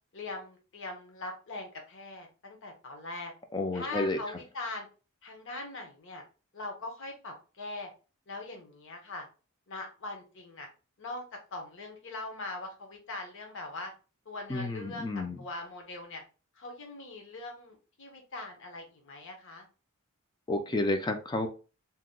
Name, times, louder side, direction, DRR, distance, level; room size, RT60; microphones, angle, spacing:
voice 1, 0.1-3.3 3.7-4.9 5.2-6.2 6.5-7.9 8.3-9.3 9.7-10.7 11.0-11.2 11.5-13.9 14.3-15.1 15.4-16.2 16.6-19.7, left 2 dB, 60° left, 3 dB, 0.9 m, -41 dB
voice 2, 3.5-4.2 14.5-15.4 20.5-21.5, left 2 dB, 20° left, 7 dB, 0.4 m, -30 dB
2.8 x 2.1 x 3.7 m, 0.34 s
head